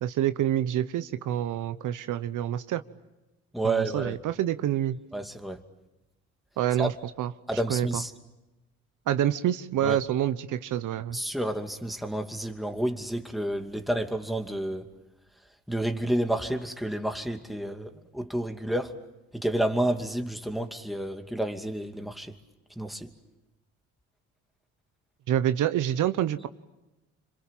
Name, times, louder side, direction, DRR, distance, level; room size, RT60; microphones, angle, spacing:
voice 1, 0.0-2.8 3.6-5.0 6.6-7.9 9.1-11.2 25.3-26.5, right 11 dB, 70° right, 1.1 m, -27 dB
voice 2, 3.5-4.2 5.1-5.6 6.8-6.9 7.5-8.1 9.8-10.0 11.1-14.8 15.7-19.0 19.3-22.3 22.8-23.1, right 1 dB, ahead, 2.5 m, -30 dB
27.5 x 26.0 x 7.5 m
supercardioid pair, 80°, 32 cm